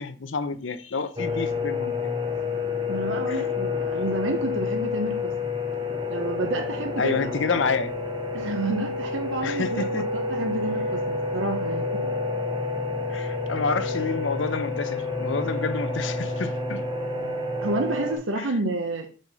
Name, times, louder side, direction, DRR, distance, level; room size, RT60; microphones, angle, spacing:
voice 1, 0.0-2.1 3.3-3.4 7.0-7.9 9.4-10.0 13.1-16.8 18.4-18.5, left 4 dB, 75° left, 0.6 m, -29 dB
sound 1, 1.2-18.2, left 3 dB, 25° right, 1.0 m, -29 dB
voice 2, 2.9-5.5 6.1-7.2 8.3-12.1 17.2-17.3 17.6-19.1, right 2 dB, 80° right, 0.8 m, -30 dB
5.2 x 3.9 x 5.4 m
head